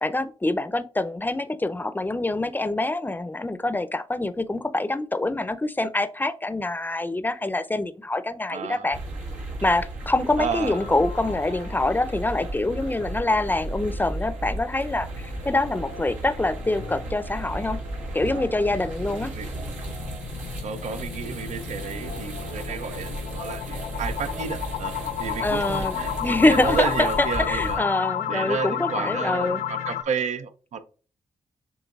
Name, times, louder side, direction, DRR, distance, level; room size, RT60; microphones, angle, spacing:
voice 1, 0.0-9.0 9.6-17.8 18.1-19.3 25.4-29.6, left 2 dB, 15° left, 0.6 m, -25 dB
voice 2, 8.5-8.9 10.4-10.9 19.1-19.5 20.6-27.8 28.3-30.8, right 6 dB, 70° right, 0.6 m, -31 dB
sound 1, 8.9-27.8, right 1 dB, 85° right, 1.4 m, -35 dB
sound 2, 10.4-11.9 12.3-12.4 12.8-12.9 13.3-13.4 18.2-30.0, left 10 dB, 85° left, 0.4 m, -32 dB
7.2 x 3.0 x 2.4 m
supercardioid pair, 40°, 12 cm